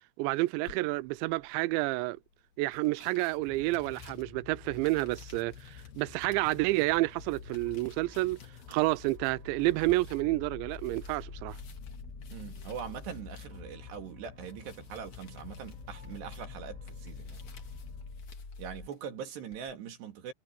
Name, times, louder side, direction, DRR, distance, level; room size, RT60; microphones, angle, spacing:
voice 1, 0.2-2.2 2.6-8.4 8.7-11.6, right 20 dB, 85° right, 2.9 m, -29 dB
sound 1, 0.6-19.7, left 6 dB, 45° left, 3.0 m, -59 dB
sound 2, 3.3-18.6, left 9 dB, 70° left, 3.1 m, -51 dB
sound 3, 7.2-18.9, left 3 dB, 25° left, 3.2 m, -47 dB
voice 2, 12.3-17.4 18.6-20.3, right 7 dB, 70° right, 4.6 m, -42 dB
omnidirectional pair, 5.1 m